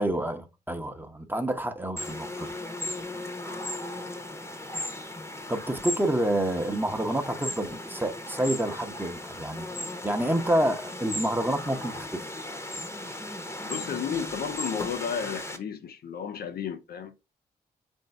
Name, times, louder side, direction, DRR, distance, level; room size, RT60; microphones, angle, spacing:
voice 1, 0.0-2.5 5.5-12.3, right 1 dB, 10° right, 0.9 m, -28 dB
sound 1, 2.0-15.6, left 1 dB, 15° left, 0.9 m, -37 dB
voice 2, 13.6-17.3, left 7 dB, 60° left, 0.5 m, -33 dB
3.7 x 2.7 x 3.3 m
hypercardioid pair, 40°, 18 cm